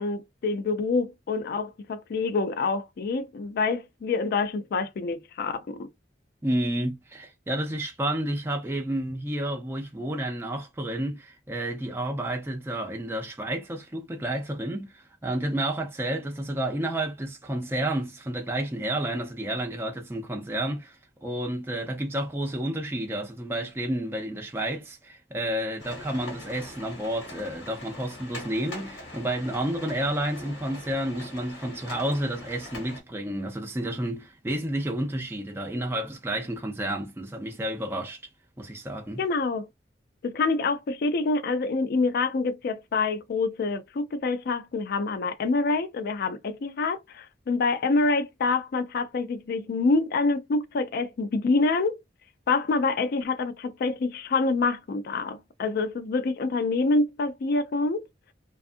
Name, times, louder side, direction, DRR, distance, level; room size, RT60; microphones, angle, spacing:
voice 1, 0.0-5.9 39.2-39.7 40.2-52.0 52.5-58.1, left 3 dB, 55° left, 0.4 m, -26 dB
voice 2, 6.4-38.2 38.6-39.2, right 1 dB, 15° right, 0.4 m, -30 dB
sound 1, 25.8-33.0, left 2 dB, 90° left, 1.2 m, -42 dB
2.5 x 2.4 x 2.4 m
head